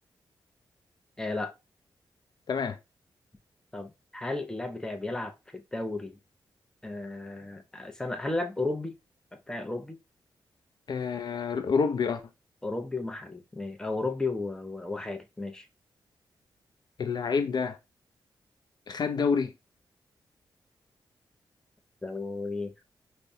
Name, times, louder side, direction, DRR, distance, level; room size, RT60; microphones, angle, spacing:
voice 1, 1.2-1.5 3.7-6.2 6.8-8.9 9.3-10.0 12.6-15.7 22.0-22.7, left 2 dB, 10° left, 0.5 m, -34 dB
voice 2, 10.9-12.2 17.0-17.8 18.9-19.5, left 5 dB, 55° left, 0.4 m, -28 dB
4.7 x 2.1 x 2.6 m
cardioid pair, 90°, 8 cm